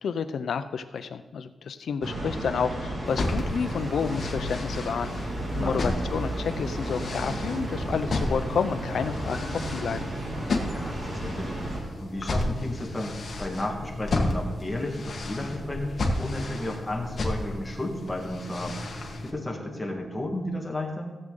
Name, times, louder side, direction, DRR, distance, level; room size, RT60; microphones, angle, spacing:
voice 1, 0.0-10.1, left 6 dB, 70° left, 10 dB, 0.6 m, -30 dB
sound 1, 2.0-11.8, right 1 dB, 35° right, 2.1 m, -33 dB
sound 2, 3.1-19.3, left 2 dB, 45° left, 1.6 m, -33 dB
voice 2, 5.5-6.0 10.6-18.8 19.2-21.1, left 1 dB, 10° left, 0 dB, 1.7 m, -33 dB
sound 3, 6.3-20.4, right 1 dB, 80° right, 3.9 m, -44 dB
16.5 x 7.7 x 3.9 m, 1.2 s
wide cardioid pair, 155°, 0 cm